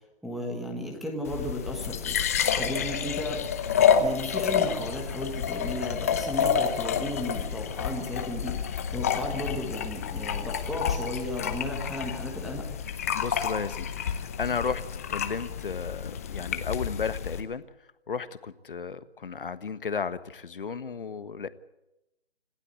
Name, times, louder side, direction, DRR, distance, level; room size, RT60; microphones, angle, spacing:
voice 1, 0.2-2.2 2.6-3.4 4.0-12.7, left 1 dB, ahead, 1 dB, 1.3 m, -34 dB
sound 1, 1.3-17.4, left 7 dB, 15° left, 0.8 m, -29 dB
voice 2, 13.1-14.8 15.1-17.6 18.1-21.5, left 5 dB, 55° left, 13 dB, 1.4 m, -34 dB
26.5 x 15.5 x 8.4 m, 0.92 s
figure-of-eight pair, 155°, 32 cm